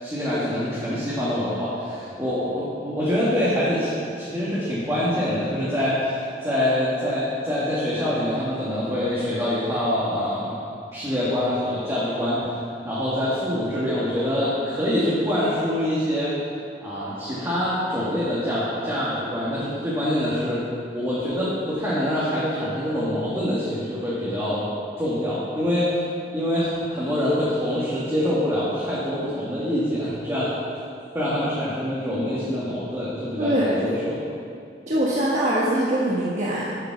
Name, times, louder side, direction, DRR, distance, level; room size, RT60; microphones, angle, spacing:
voice 1, 0.0-10.6 10.9-12.4 12.8-16.3 16.8-20.6 20.9-24.6 25.0-26.0 26.3-30.5 31.1-34.1, left 1 dB, 15° right, -10 dB, 2.0 m, -25 dB
voice 2, 33.4-33.9 34.9-36.8, right 1 dB, 45° right, -7 dB, 1.3 m, -23 dB
9.3 x 7.6 x 6.1 m, 2.4 s
head